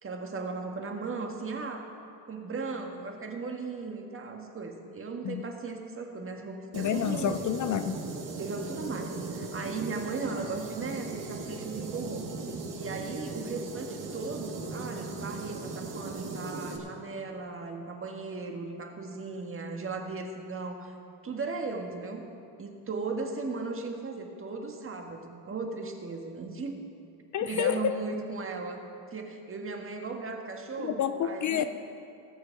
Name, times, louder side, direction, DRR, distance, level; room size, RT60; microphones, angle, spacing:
voice 1, 0.0-1.9 2.3-7.4 8.4-12.3 12.7-20.9 21.2-22.3 22.6-26.9 27.4-31.7, right 4 dB, 30° right, 3 dB, 1.7 m, -37 dB
voice 2, 6.7-8.0 27.3-27.9 30.8-31.6, left 9 dB, 40° left, 10 dB, 0.6 m, -29 dB
sound 1, 6.7-16.8, right 3 dB, 45° right, 2.1 m, -38 dB
19.5 x 6.8 x 5.9 m, 2.5 s
supercardioid pair, 100°, 44 cm